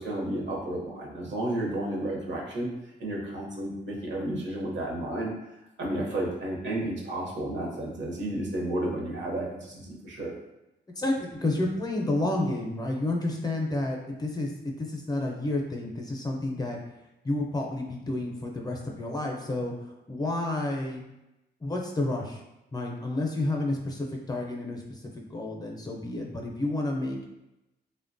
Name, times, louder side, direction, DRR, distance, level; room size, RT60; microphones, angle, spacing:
voice 1, 0.0-2.7 3.0-5.3 5.8-10.3, right 1 dB, 70° right, -2 dB, 0.8 m, -32 dB
voice 2, 11.0-16.8 17.2-19.7 20.1-21.0 21.6-22.4 22.7-27.3, left 2 dB, 20° left, 0 dB, 0.5 m, -30 dB
3.1 x 2.2 x 2.5 m, 0.94 s
cardioid pair, 75°, 19 cm